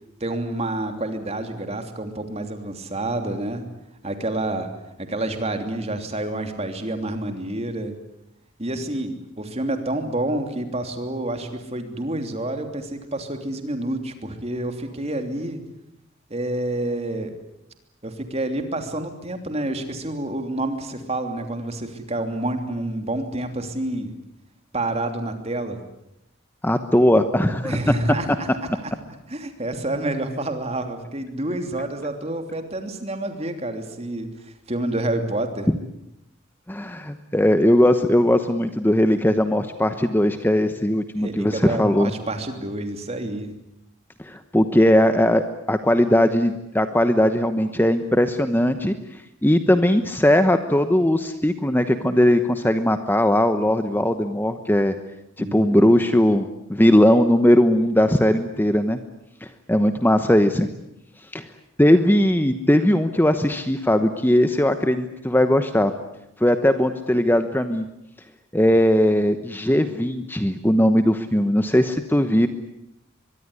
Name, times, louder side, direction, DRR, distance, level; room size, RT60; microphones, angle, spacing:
voice 1, 0.2-3.7 4.0-4.7 5.0-7.9 8.6-15.6 16.3-17.3 18.0-24.1 24.7-25.8 27.6-28.5 28.8-28.9 29.3-35.7 41.2-43.5 55.4-56.0, right 1 dB, 30° right, 6 dB, 3.1 m, -28 dB
voice 2, 26.6-27.8 36.7-42.1 44.2-48.9 49.4-54.9 55.4-56.4 56.7-59.0 59.4-60.7 61.3-61.5 61.8-65.9 66.4-67.9 68.5-72.5, left 1 dB, 10° left, 9 dB, 1.0 m, -19 dB
23.5 x 22.5 x 9.8 m, 0.83 s
head